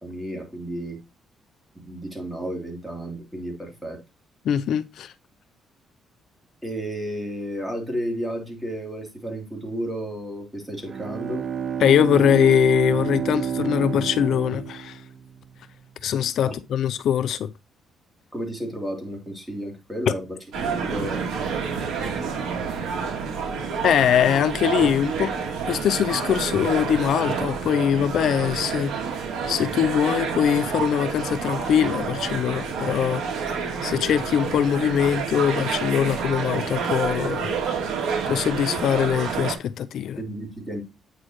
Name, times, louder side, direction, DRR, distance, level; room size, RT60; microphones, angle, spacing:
voice 1, 0.0-1.0 1.8-4.0 6.6-11.4 16.4-16.6 18.3-21.2 40.2-40.8, equal, 5° right, 3.1 m, -32 dB
voice 2, 4.5-5.1 11.8-15.0 16.0-17.5 23.8-25.3 25.7-33.2 33.8-37.6 38.3-40.2, left 9 dB, 70° left, 0.4 m, -22 dB
Bowed string instrument, 10.7-15.5, right 7 dB, 45° right, 0.7 m, -29 dB
sound 1, 20.5-39.6, right 6 dB, 75° right, 2.4 m, -28 dB
8.8 x 6.1 x 3.0 m
cardioid pair, 90°, 0 cm